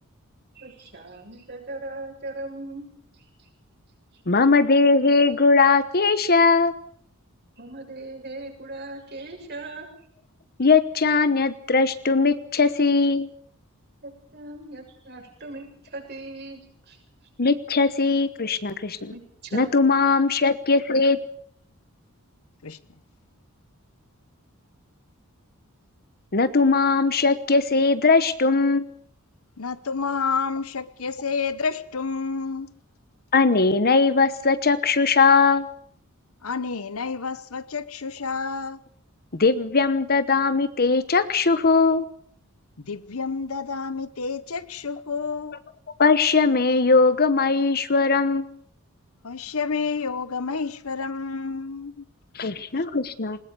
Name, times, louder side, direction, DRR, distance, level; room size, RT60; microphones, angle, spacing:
voice 1, 0.6-2.9 4.3-4.4 7.6-9.9 14.0-17.0 19.1-20.0, right 2 dB, 50° right, 7.1 m, -39 dB
voice 2, 4.3-6.7 10.6-13.3 17.4-19.1 19.5-21.2 26.3-28.9 33.3-35.7 39.4-42.0 46.0-48.5 52.4-53.4, left 4 dB, 45° left, 1.1 m, -20 dB
voice 3, 29.6-32.8 36.4-38.8 42.8-45.6 49.2-52.0 52.4-52.5 52.8-52.9, left 5 dB, 70° left, 1.0 m, -29 dB
20.5 x 20.5 x 6.9 m
head